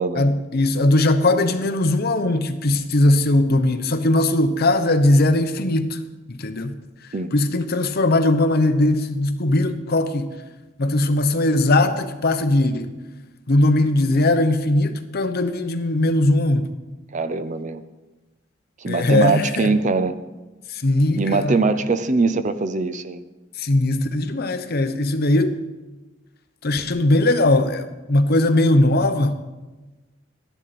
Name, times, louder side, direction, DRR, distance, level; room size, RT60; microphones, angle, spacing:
voice 1, 0.2-6.0 6.3-6.7 7.3-10.3 10.8-12.9 13.5-16.7 18.9-19.7 20.7-21.6 23.6-25.6 26.6-29.4, left 2 dB, 50° left, 0.8 m, -19 dB
voice 2, 17.1-17.8 18.8-20.1 21.2-23.2, right 4 dB, 35° right, 0.5 m, -22 dB
13.5 x 10.5 x 4.2 m
head